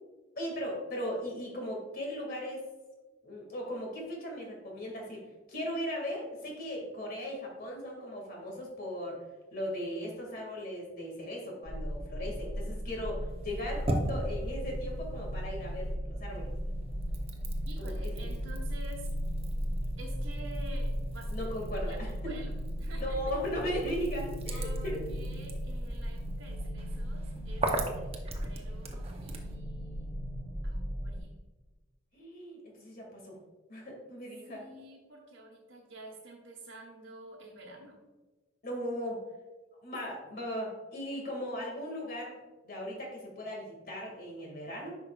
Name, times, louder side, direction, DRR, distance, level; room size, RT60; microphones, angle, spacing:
voice 1, 0.4-2.6 3.2-5.2 5.5-9.2 9.5-16.5 17.8-18.1 21.3-22.1 23.0-25.1 32.1-33.4 33.7-34.8 38.6-39.2 39.8-45.0, equal, 50° left, -1 dB, 2.1 m, -37 dB
sound 1, 11.6-31.2, equal, 30° left, 2.2 m, -36 dB
sound 2, 13.3-16.0 16.3-29.6, right 2 dB, 30° right, 0.8 m, -41 dB
voice 2, 17.6-19.1 20.0-23.4 24.5-30.1 30.6-31.4 34.5-38.0, right 1 dB, 70° right, -4 dB, 1.1 m, -49 dB
9.8 x 5.7 x 2.4 m, 1.2 s
head